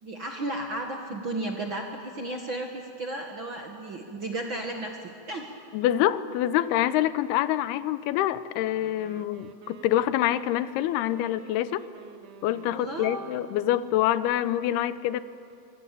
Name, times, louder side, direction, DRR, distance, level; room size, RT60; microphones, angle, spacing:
voice 1, 0.0-5.5 12.7-13.2, right 2 dB, 50° right, 2 dB, 1.5 m, -34 dB
voice 2, 5.7-11.9 12.4-15.2, left 13 dB, 85° left, 15 dB, 2.8 m, -26 dB
Wind instrument woodwind instrument, 8.5-13.8, right 6 dB, 85° right, 1.2 m, -49 dB
25.0 x 23.5 x 8.4 m, 2.5 s
omnidirectional pair, 4.5 m